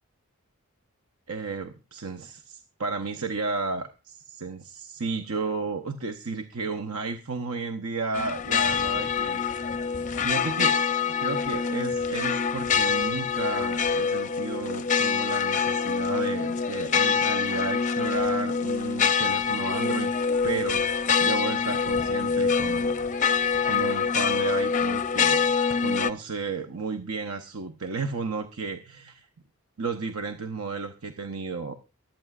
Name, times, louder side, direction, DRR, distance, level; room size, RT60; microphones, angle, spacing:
voice 1, 1.3-9.4 10.2-10.8 11.2-20.1 20.4-23.0 23.7-29.3 29.8-31.7, right 4 dB, 75° right, 6 dB, 0.9 m, -33 dB
sound 1, 8.1-26.1, left 6 dB, 35° left, 0.5 m, -25 dB
23.5 x 9.1 x 2.4 m, 0.31 s
head